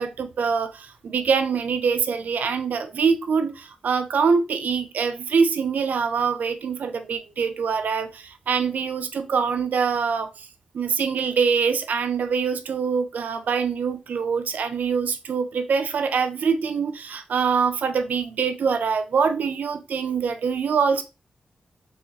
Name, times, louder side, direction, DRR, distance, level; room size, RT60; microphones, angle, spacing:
voice 1, 0.0-10.5 10.7-21.0, right 5 dB, 80° right, 0.5 m, -24 dB
3.7 x 3.0 x 2.8 m
cardioid pair, 55°, 3 cm